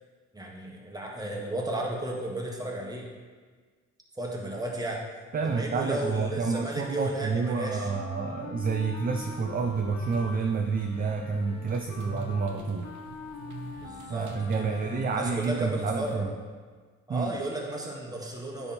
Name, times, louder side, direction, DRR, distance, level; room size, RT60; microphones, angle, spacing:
voice 1, 0.3-3.1 4.2-5.0 5.4-7.9 13.8-16.3 17.1-18.7, right 1 dB, 10° right, -1 dB, 1.4 m, -34 dB
voice 2, 5.3-12.9 14.1-16.3 17.1-17.3, right 4 dB, 30° right, 3 dB, 0.5 m, -29 dB
Wind instrument woodwind instrument, 7.4-15.5, left 5 dB, 65° left, 0.7 m, -44 dB
sound 1, 9.1-16.2, right 4 dB, 75° right, 0.9 m, -46 dB
9.9 x 3.6 x 4.3 m, 1.5 s
cardioid pair, 90°, 30 cm